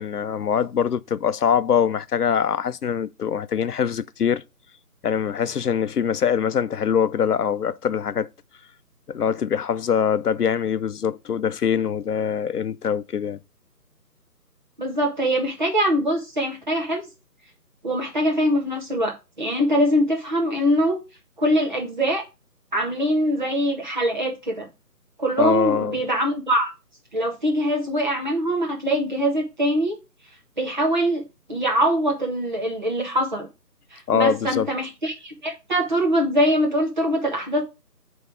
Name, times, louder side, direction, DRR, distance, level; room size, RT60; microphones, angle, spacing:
voice 1, 0.0-4.4 5.0-8.3 9.1-13.4 25.4-26.0 34.1-34.7, left 7 dB, 70° left, 0.7 m, -23 dB
voice 2, 14.8-17.1 17.8-21.0 21.4-22.2 22.7-24.7 25.2-26.7 27.1-29.9 30.6-31.2 31.5-33.5 33.9-37.6, equal, 30° right, 1.6 m, -23 dB
8.0 x 3.6 x 5.1 m
figure-of-eight pair, 170°, 48 cm